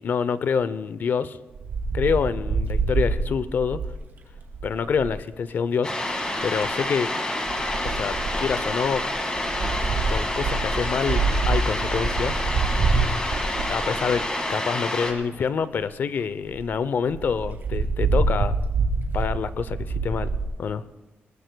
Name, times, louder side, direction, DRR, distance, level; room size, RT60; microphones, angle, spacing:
voice 1, 0.0-1.4 1.9-3.8 4.6-5.9 6.4-7.1 7.8-9.0 10.1-12.4 13.7-18.6 19.1-20.3 20.6-20.8, left 6 dB, 55° left, 15 dB, 0.6 m, -26 dB
Wind, 1.5-5.2 6.3-6.7 7.5-14.4 15.0-15.1 15.4-15.5 15.8-15.9 16.2-16.3 16.5-16.7 17.1-20.4, right 4 dB, 60° right, 2.2 m, -26 dB
sound 1, 5.8-15.1, left 1 dB, 20° left, 1.9 m, -28 dB
20.5 x 19.5 x 2.3 m, 1.1 s
wide cardioid pair, 135°, 4 cm